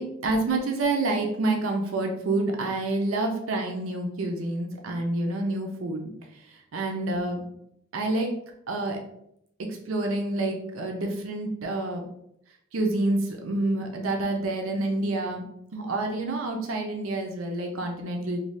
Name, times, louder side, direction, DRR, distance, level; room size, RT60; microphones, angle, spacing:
voice 1, 0.0-7.5 7.9-8.3 8.7-9.0 9.6-12.0 12.7-15.4 15.7-18.4, right 2 dB, 85° right, 2 dB, 0.5 m, -28 dB
2.7 x 2.2 x 3.2 m, 0.75 s
head